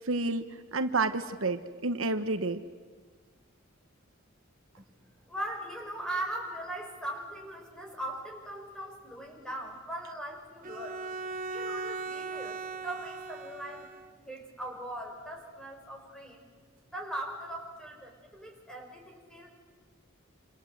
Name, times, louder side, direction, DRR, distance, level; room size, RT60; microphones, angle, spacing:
voice 1, 0.1-2.6, right 3 dB, 75° right, 9 dB, 1.2 m, -30 dB
voice 2, 5.3-11.0 11.5-13.9 14.2-16.4 16.9-19.6, right 1 dB, 5° left, 1 dB, 5.4 m, -40 dB
Bowed string instrument, 10.6-14.1, right 3 dB, 40° right, 1.5 m, -38 dB
27.0 x 27.0 x 7.9 m, 1.5 s
head